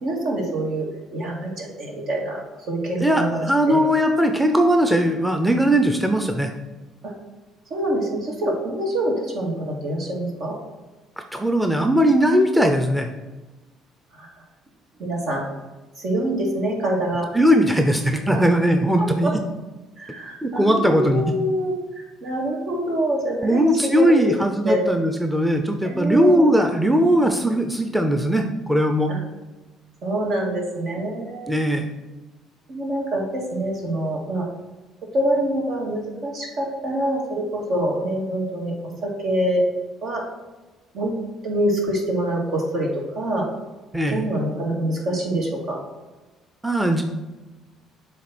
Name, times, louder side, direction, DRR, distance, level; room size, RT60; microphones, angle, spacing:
voice 1, 0.0-3.8 7.0-7.1 7.7-10.6 14.1-14.3 15.0-15.4 16.0-17.3 18.3-18.4 19.0-19.3 20.0-24.4 24.7-24.8 25.8-26.5 29.1-29.2 30.0-31.5 32.7-34.5 35.1-39.7 40.0-40.2 40.9-41.1 41.4-43.5 44.1-45.8, right 1 dB, 65° right, -1 dB, 2.2 m, -25 dB
voice 2, 3.0-6.5 11.2-13.1 17.3-19.3 20.4-21.2 23.4-29.1 31.5-31.9 43.9-44.2 46.6-47.0, equal, 5° right, 5 dB, 0.7 m, -19 dB
7.4 x 3.4 x 6.0 m, 1.1 s
supercardioid pair, 75°, 0 cm